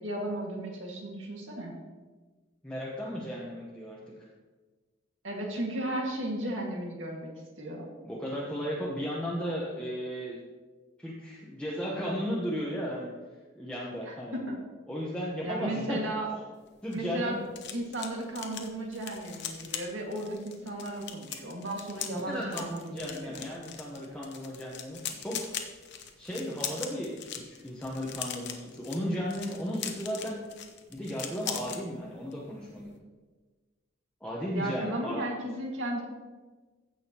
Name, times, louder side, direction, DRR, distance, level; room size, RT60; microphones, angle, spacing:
voice 1, 0.0-1.7 5.2-7.3 7.6-7.9 14.1-14.6 15.4-16.3 16.9-17.4 17.7-23.4 34.5-36.0, right 1 dB, 70° right, 0 dB, 2.0 m, -35 dB
voice 2, 2.6-4.0 8.0-10.4 11.0-13.1 13.6-14.4 14.9-16.0 16.8-17.4 22.1-25.4 26.2-30.4 30.9-32.9 34.2-35.2, equal, 5° left, -5 dB, 1.0 m, -35 dB
sound 1, 16.6-31.8 32.1-32.4 32.7-32.9, left 8 dB, 60° left, 0.9 m, -41 dB
15.5 x 6.3 x 3.0 m, 1.3 s
head